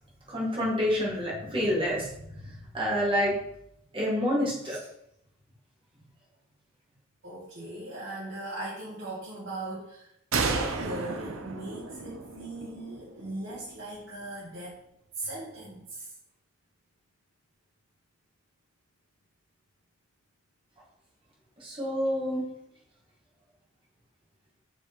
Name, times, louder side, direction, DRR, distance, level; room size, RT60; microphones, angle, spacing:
voice 1, 0.3-2.1 2.7-3.3 3.9-4.8 21.6-22.4, equal, 25° right, -4 dB, 1.8 m, -27 dB
voice 2, 1.9-2.7 4.7-4.8 7.2-10.1 10.4-14.8 15.2-16.1, right 1 dB, 60° right, -9 dB, 2.2 m, -39 dB
sound 1, 10.3-13.8, right 4 dB, 90° right, 0.7 m, -33 dB
6.5 x 4.9 x 3.6 m, 0.78 s
head